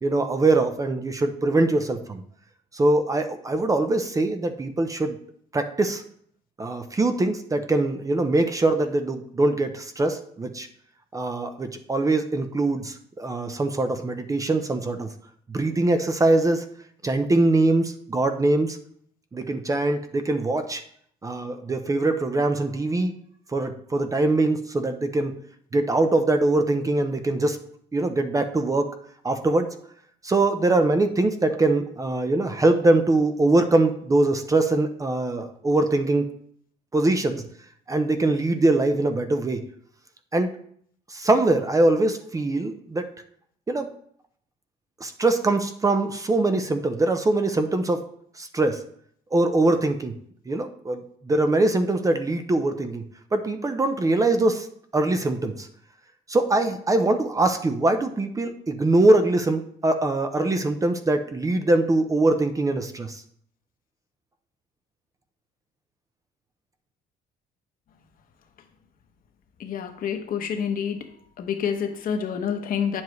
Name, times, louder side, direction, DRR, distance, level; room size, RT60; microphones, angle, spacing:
voice 1, 0.0-2.2 2.7-5.2 5.5-6.0 6.6-10.7 11.1-15.1 15.5-16.7 17.0-18.8 19.3-20.8 21.2-23.2 23.5-25.3 25.7-27.6 27.9-28.9 29.2-29.7 30.2-36.3 36.9-37.4 37.9-39.6 40.3-40.5 41.1-43.1 43.7-43.9 45.0-48.0 48.4-48.8 49.3-50.2 50.5-53.0 53.3-54.7 54.9-55.7 56.3-63.2, right 2 dB, 20° right, 8 dB, 0.6 m, -22 dB
voice 2, 69.6-71.1 71.4-73.0, left 7 dB, 55° left, 6 dB, 1.1 m, -28 dB
9.1 x 7.2 x 3.1 m, 0.64 s
cardioid pair, 110°, 17 cm